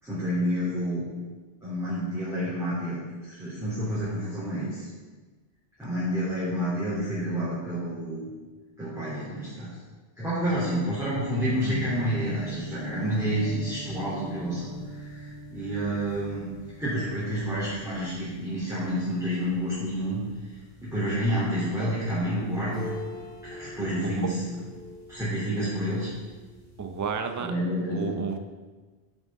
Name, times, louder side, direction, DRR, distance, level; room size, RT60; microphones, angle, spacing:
voice 1, 0.0-1.1 1.6-4.9 5.8-8.2 8.8-9.7 10.2-16.5 16.8-20.5 20.8-22.8 23.4-24.4 25.1-26.1 27.4-28.2, equal, 5° right, -12 dB, 3.2 m, -29 dB
sound 1, 11.4-27.1, right 2 dB, 55° left, 2.5 m, -42 dB
voice 2, 26.8-27.5 27.9-28.4, right 6 dB, 25° right, 6 dB, 0.4 m, -32 dB
10.5 x 7.5 x 3.7 m, 1.3 s
omnidirectional pair, 1.1 m